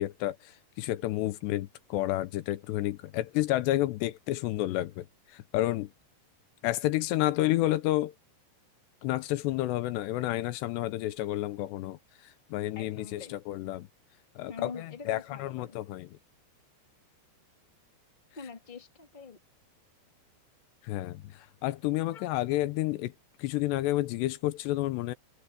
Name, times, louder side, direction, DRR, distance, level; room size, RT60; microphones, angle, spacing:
voice 1, 0.0-5.9 6.6-8.1 9.0-13.9 14.4-16.1 20.8-23.1 23.4-25.1, left 16 dB, 85° left, 2.9 m, -30 dB
voice 2, 12.7-13.4 14.5-15.8 18.4-19.4 22.1-22.3, left 5 dB, 15° left, 2.1 m, -45 dB
omnidirectional pair, 5.0 m